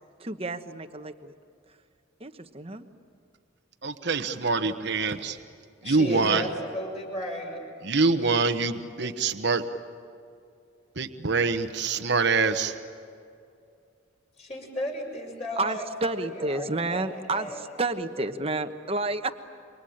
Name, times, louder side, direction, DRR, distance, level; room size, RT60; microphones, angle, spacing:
voice 1, 0.2-1.3 2.2-2.9 15.6-19.3, right 2 dB, 30° right, 8 dB, 1.1 m, -30 dB
voice 2, 3.8-5.4 5.9-6.4 7.9-9.6 11.0-12.7, right 4 dB, 55° right, 7 dB, 1.1 m, -25 dB
voice 3, 5.8-7.6 14.4-17.6, left 1 dB, 30° left, -1 dB, 5.8 m, -35 dB
28.0 x 24.5 x 8.7 m, 2.4 s
head